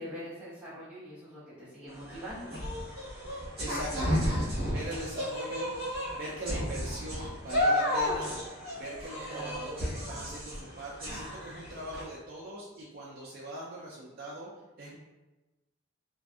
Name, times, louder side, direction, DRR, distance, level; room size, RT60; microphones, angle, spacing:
voice 1, 0.0-2.5 5.5-5.6 9.3-9.7, equal, 5° right, -12 dB, 1.0 m, -43 dB
sound 1, 1.9-12.0, left 1 dB, 30° right, 1.1 m, -33 dB
voice 2, 3.6-14.5 14.8-15.0, right 1 dB, 50° right, -5 dB, 0.4 m, -41 dB
2.5 x 2.4 x 2.3 m, 1.1 s
head